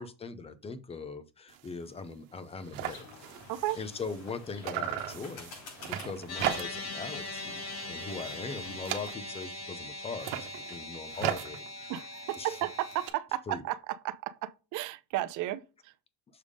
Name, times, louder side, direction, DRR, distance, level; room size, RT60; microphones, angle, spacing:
voice 1, 0.0-3.1 3.8-5.5 5.8-11.9 12.4-12.5 13.5-13.6, left 4 dB, 15° left, 0.5 m, -40 dB
sound 1, 1.5-1.7 2.1-2.2 2.4-4.4 4.6-7.0 7.3-7.7 8.0-9.5 10.1-13.1, right 11 dB, 75° right, 1.1 m, -38 dB
sound 2, 2.9-8.8, left 3 dB, 65° left, 4.1 m, -50 dB
voice 2, 3.5-3.8 11.9-15.9, right 15 dB, 45° right, 0.5 m, -34 dB
sound 3, 6.3-13.1, left 2 dB, 35° left, 2.1 m, -41 dB
6.6 x 3.5 x 5.0 m
cardioid pair, 140°, 41 cm